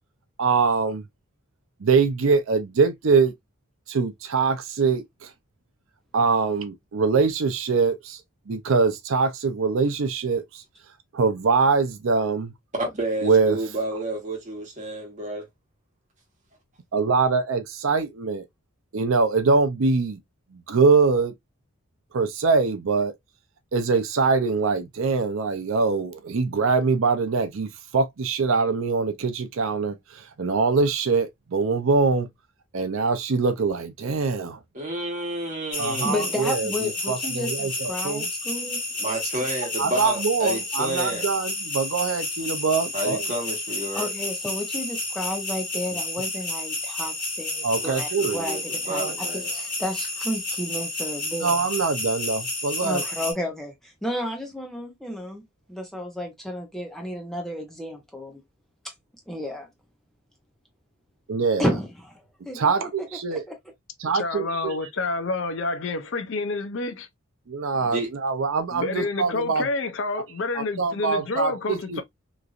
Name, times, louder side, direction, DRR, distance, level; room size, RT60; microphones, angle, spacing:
voice 1, 0.4-1.0 1.8-3.3 3.9-5.3 6.1-8.2 8.5-10.6 11.1-12.5 13.2-13.6 16.9-18.4 18.9-20.2 20.5-21.3 22.1-23.1 23.7-32.3 32.7-34.6 35.8-38.3 39.8-43.2 47.6-48.4 48.9-49.1 51.4-53.0 61.3-61.6 62.5-63.4 64.0-64.7 67.5-69.6 70.5-72.0, right 4 dB, 70° right, 0.5 m, -23 dB
voice 2, 12.8-15.5 34.7-36.3 39.0-41.3 42.9-44.1 47.8-48.6 48.9-49.5 67.8-68.1, right 1 dB, 35° right, 1.2 m, -30 dB
sound 1, 35.7-53.3, left 2 dB, 40° left, 1.4 m, -31 dB
voice 3, 36.0-39.0 43.9-51.7 52.8-55.4 55.7-58.4 58.8-58.9 59.3-59.7 61.6-63.6, left 1 dB, ahead, 0.5 m, -32 dB
voice 4, 64.1-67.1 68.7-72.0, left 3 dB, 60° left, 0.5 m, -28 dB
3.0 x 2.5 x 2.3 m
head